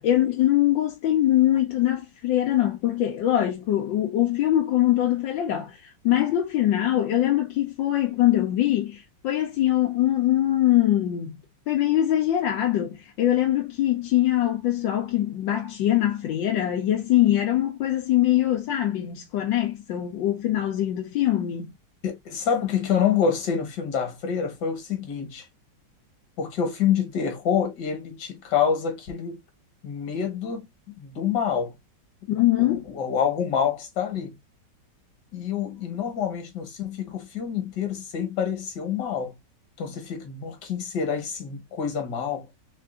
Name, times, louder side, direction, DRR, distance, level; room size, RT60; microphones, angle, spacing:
voice 1, 0.0-11.3 11.7-21.7 32.3-32.9, left 13 dB, 85° left, 1.5 m, -23 dB
voice 2, 22.0-25.4 26.4-29.4 29.8-30.7 31.0-31.7 32.6-34.4 35.3-39.3 39.8-42.5, left 7 dB, 70° left, 1.8 m, -27 dB
3.7 x 3.4 x 2.4 m
omnidirectional pair, 2.0 m